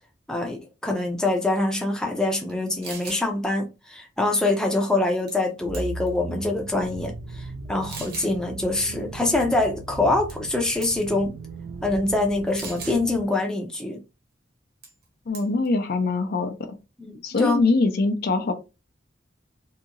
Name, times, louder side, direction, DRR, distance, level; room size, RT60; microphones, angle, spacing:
voice 1, 0.3-11.3 11.8-14.0 17.0-17.1 17.4-17.7, left 2 dB, 5° left, 0.5 m, -25 dB
sound 1, 2.5-2.6 2.8-3.3 5.3-5.5 5.7-6.2 6.9-7.0 7.9-8.3 10.3-10.5 10.8-11.1 12.6-13.0 14.8-15.0 15.3-15.7, right 4 dB, 55° right, 0.9 m, -38 dB
sound 2, 5.6-13.2, right 3 dB, 80° right, 0.4 m, -37 dB
voice 2, 15.3-16.8 17.2-18.5, left 3 dB, 55° left, 0.5 m, -23 dB
2.8 x 2.7 x 2.5 m
head